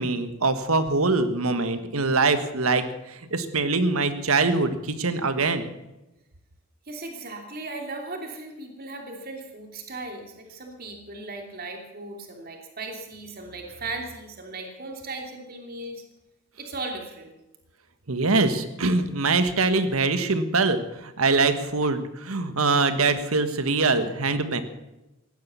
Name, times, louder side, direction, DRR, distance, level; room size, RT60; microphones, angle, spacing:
voice 1, 0.0-5.7 18.1-24.6, right 3 dB, 85° right, 10 dB, 1.5 m, -23 dB
voice 2, 6.9-16.0 16.6-17.3, right 2 dB, 45° right, 3 dB, 2.9 m, -37 dB
16.5 x 11.5 x 7.0 m, 0.95 s
head